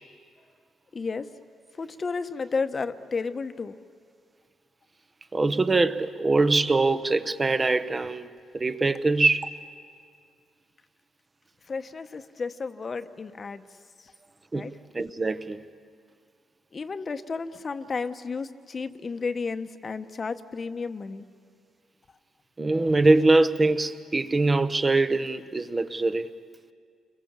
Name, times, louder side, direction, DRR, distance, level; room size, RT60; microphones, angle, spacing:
voice 1, 0.9-1.3 1.8-3.8 11.7-13.7 14.0-14.1 14.5-14.7 16.7-21.2, left 4 dB, 35° left, 1.0 m, -32 dB
voice 2, 5.3-8.3 8.5-9.5 14.5-15.6 22.6-26.3, right 3 dB, 25° right, 0.9 m, -23 dB
29.0 x 22.5 x 7.4 m
cardioid pair, 90°, 0 cm